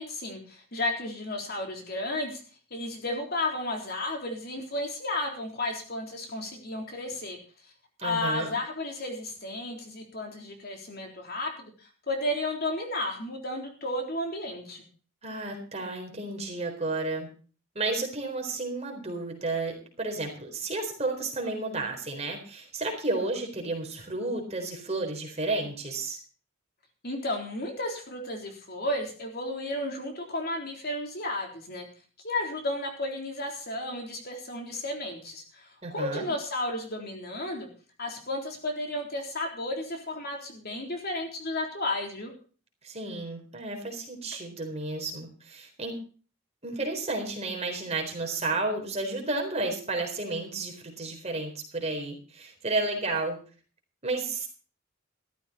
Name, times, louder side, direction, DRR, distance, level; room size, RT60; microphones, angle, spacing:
voice 1, 0.0-2.4 2.7-7.4 8.0-14.8 27.0-31.9 32.2-35.7 35.9-37.7 38.0-42.3, left 1 dB, 50° left, 2 dB, 3.8 m, -33 dB
voice 2, 8.0-8.5 15.2-17.3 17.7-26.2 35.8-36.3 42.8-46.0 46.6-53.4 54.0-54.5, right 2 dB, 30° right, 2 dB, 4.0 m, -32 dB
14.0 x 14.0 x 4.3 m, 0.39 s
head